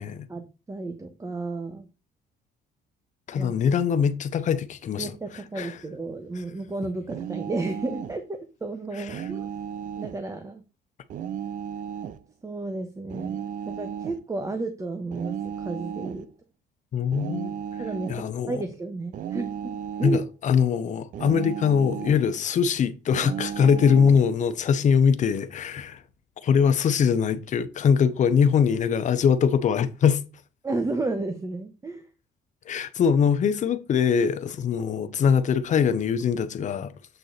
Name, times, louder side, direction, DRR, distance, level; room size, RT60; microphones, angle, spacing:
voice 1, 0.3-1.9 3.4-3.5 5.0-9.5 10.0-10.6 12.4-16.3 17.8-19.7 20.0-20.3 30.6-32.0, right 3 dB, 20° right, 1.0 m, -32 dB
voice 2, 3.3-5.1 5.6-5.7 9.1-9.2 16.9-17.6 18.1-18.6 20.0-26.0 26.4-30.2 32.7-36.9, left 7 dB, 45° left, 0.8 m, -22 dB
sound 1, 7.1-8.2 9.1-10.2 11.1-12.2 13.1-14.2 15.1-16.2 17.1-18.2 19.1-20.3 21.1-22.3 23.1-24.2, right 8 dB, 50° right, 0.5 m, -34 dB
8.1 x 3.9 x 4.0 m
cardioid pair, 110°, 17 cm